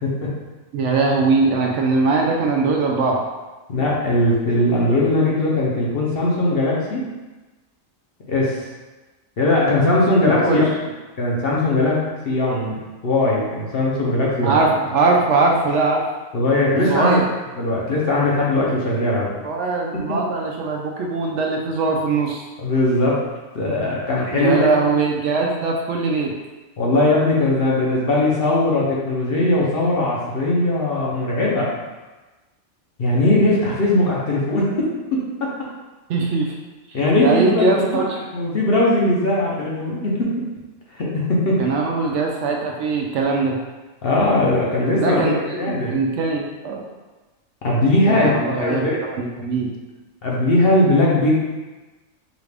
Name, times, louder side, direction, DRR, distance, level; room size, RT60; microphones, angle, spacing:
voice 1, 0.7-3.2 10.3-10.6 14.4-16.0 16.7-17.3 19.4-22.4 24.3-26.3 36.1-36.6 37.1-38.0 41.6-43.6 45.0-46.8 48.0-48.8 49.2-49.7, right 3 dB, 70° right, 0 dB, 0.8 m, -21 dB
voice 2, 3.7-7.0 8.3-8.7 9.4-10.6 11.2-14.6 16.3-17.2 17.6-19.3 20.1-20.2 22.6-23.2 23.5-24.6 26.8-31.7 33.0-35.5 36.9-38.0 38.3-40.4 40.9-41.7 44.0-46.1 47.6-48.3 48.6-49.0 50.2-51.3, left 1 dB, 50° left, -4 dB, 0.8 m, -19 dB
5.0 x 2.4 x 3.3 m, 1.2 s
omnidirectional pair, 1.4 m